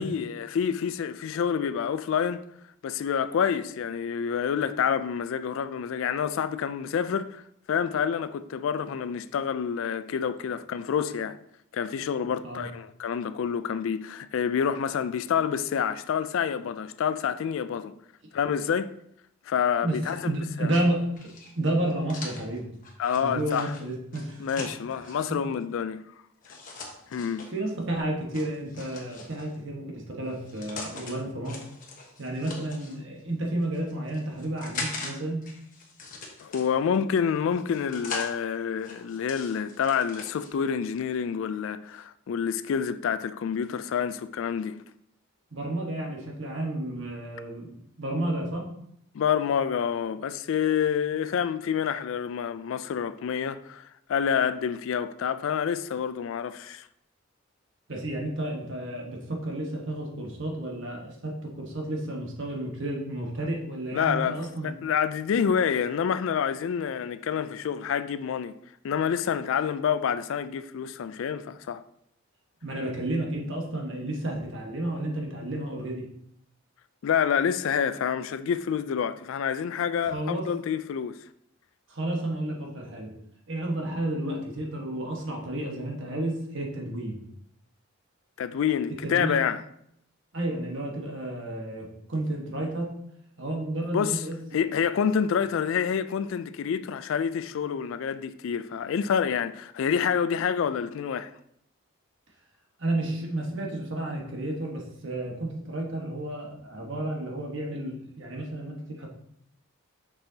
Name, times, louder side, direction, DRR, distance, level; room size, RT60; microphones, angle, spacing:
voice 1, 0.0-2.4 2.8-7.4 7.7-11.4 11.7-17.9 18.3-18.9 19.5-20.3 20.6-20.7 23.0-23.7 24.4-26.0 27.1-27.5 36.4-44.8 49.1-56.9 63.9-68.5 68.8-71.8 77.0-81.2 88.4-89.6 93.9-94.2 94.5-101.3, left 7 dB, 65° left, 0.3 m, -28 dB
voice 2, 19.8-22.7 23.1-24.7 25.0-25.4 27.5-31.6 32.2-35.5 45.5-48.7 57.9-64.7 72.6-76.1 80.1-80.5 81.9-83.2 83.5-87.2 89.0-89.4 90.3-92.9 93.4-94.4 102.8-109.1, right 1 dB, 55° right, 1.3 m, -31 dB
sound 1, 21.1-25.3 26.4-27.5 28.3-29.6 30.3-31.1 31.4-33.0 33.6-35.1 35.4-37.0 37.5-38.3 38.8-40.5, left 3 dB, 40° left, 1.0 m, -41 dB
6.6 x 6.2 x 2.7 m
head